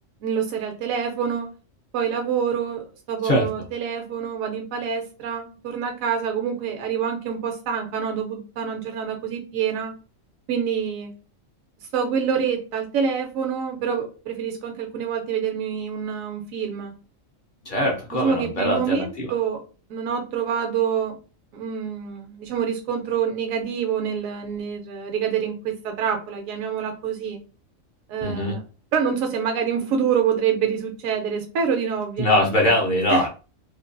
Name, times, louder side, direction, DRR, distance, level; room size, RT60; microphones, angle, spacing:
voice 1, 0.2-1.5 1.9-2.8 3.1-9.9 10.5-11.1 11.8-16.9 18.1-19.6 19.9-21.1 21.5-27.4 28.1-28.6 28.9-32.5 33.1-33.2, right 7 dB, 75° right, 3 dB, 1.0 m, -26 dB
voice 2, 17.6-19.3 28.2-28.6 32.2-33.3, left 1 dB, 55° left, -1 dB, 0.5 m, -22 dB
2.6 x 2.1 x 2.5 m, 0.34 s
omnidirectional pair, 1.4 m